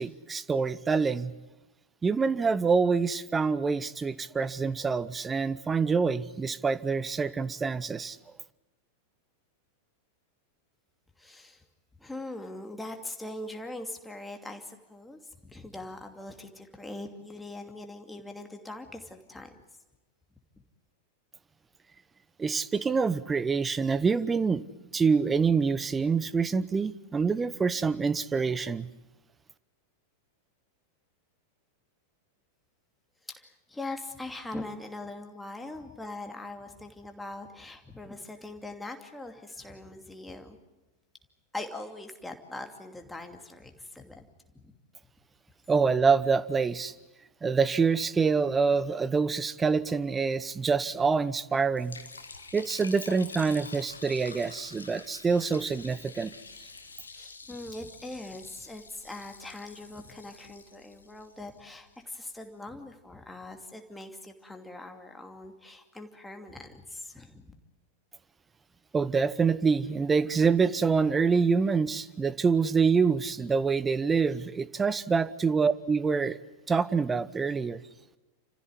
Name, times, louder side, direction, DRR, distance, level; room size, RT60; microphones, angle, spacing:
voice 1, 0.0-1.3 2.0-8.2 22.4-24.6 24.9-28.9 45.7-46.9 47.4-51.9 52.5-56.3 68.9-76.4 76.7-77.8, right 5 dB, 15° right, 17 dB, 1.0 m, -26 dB
voice 2, 11.2-11.6 12.0-19.6 33.4-40.6 41.5-44.3 44.5-44.7 57.1-67.5, left 2 dB, 5° left, 4 dB, 2.6 m, -42 dB
Liquid, 51.8-62.0, left 4 dB, 75° left, 1.8 m, -47 dB
29.5 x 15.5 x 9.9 m, 1.1 s
figure-of-eight pair, 90°, 0 cm